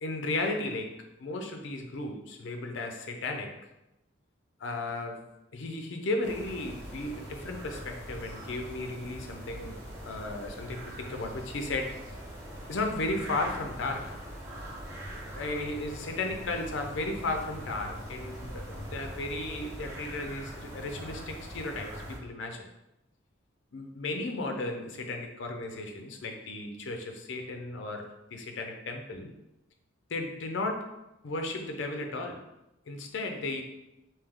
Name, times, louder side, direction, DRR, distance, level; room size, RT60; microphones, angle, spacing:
voice 1, 0.0-3.7 4.6-9.8 10.0-12.0 12.7-14.2 15.3-22.7 23.7-29.3 30.1-32.5 32.9-33.6, left 2 dB, 70° left, 4 dB, 0.5 m, -35 dB
sound 1, 6.2-22.2, equal, 15° right, 1.0 m, -42 dB
3.4 x 2.7 x 3.5 m, 0.92 s
head